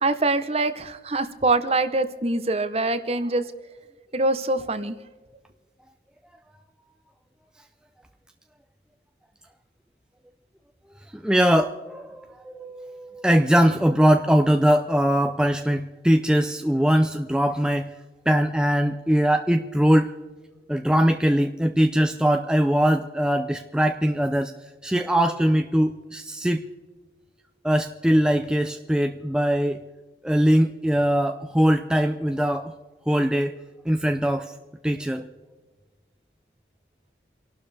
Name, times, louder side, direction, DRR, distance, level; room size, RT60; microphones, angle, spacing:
voice 1, 0.0-3.5 4.1-5.0, right 2 dB, 35° right, 11 dB, 0.9 m, -24 dB
voice 2, 11.1-17.9 18.3-20.1 20.7-24.5 24.8-26.6 27.6-29.8 30.2-32.7 33.1-33.5 33.9-34.5 34.8-35.3, equal, 5° right, 5 dB, 0.5 m, -21 dB
29.0 x 12.0 x 3.4 m, 1.4 s
head